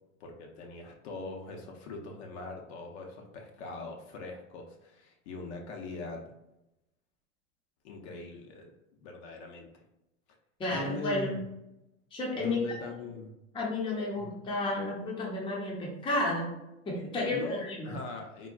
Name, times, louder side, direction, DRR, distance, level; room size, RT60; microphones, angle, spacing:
voice 1, 0.2-6.3 7.8-8.7 9.0-9.8 10.7-11.4 12.3-13.3 14.1-14.4 17.2-18.5, left 3 dB, 55° left, 2 dB, 0.6 m, -41 dB
voice 2, 10.6-11.3 12.1-12.6 13.5-16.5 16.9-18.0, left 2 dB, 15° left, -3 dB, 0.6 m, -32 dB
3.7 x 2.1 x 2.3 m, 0.89 s
hypercardioid pair, 115°, 39 cm